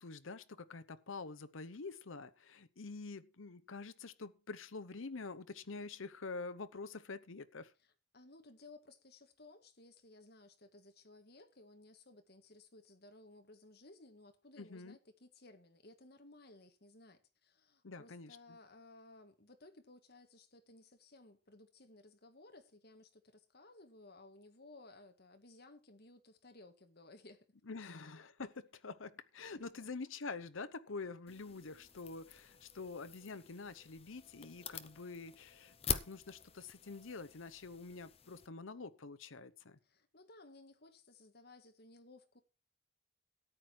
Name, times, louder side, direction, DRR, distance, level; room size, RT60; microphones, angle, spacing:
voice 1, 0.0-7.7 14.6-15.0 17.8-18.4 27.7-39.8, left 4 dB, 75° left, 0.9 m, -47 dB
voice 2, 7.8-27.5 27.8-27.9 29.5-29.9 39.8-42.4, left 2 dB, 50° left, 1.8 m, -59 dB
sound 1, 31.3-38.5, left 7 dB, 30° left, 0.8 m, -45 dB
13.5 x 9.6 x 4.6 m
head